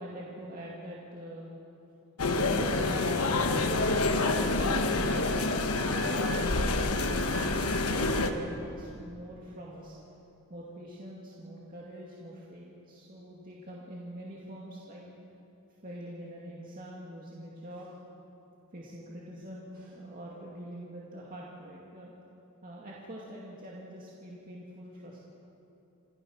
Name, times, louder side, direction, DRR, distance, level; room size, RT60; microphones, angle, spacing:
voice 1, 0.0-1.5 2.3-5.5 6.1-10.0 10.5-15.0 15.8-17.9 18.7-22.1 22.6-25.2, equal, 40° right, -5 dB, 2.3 m, -44 dB
sound 1, 2.2-8.3, left 2 dB, 75° left, 1.2 m, -27 dB
27.5 x 14.5 x 6.5 m, 2.8 s
head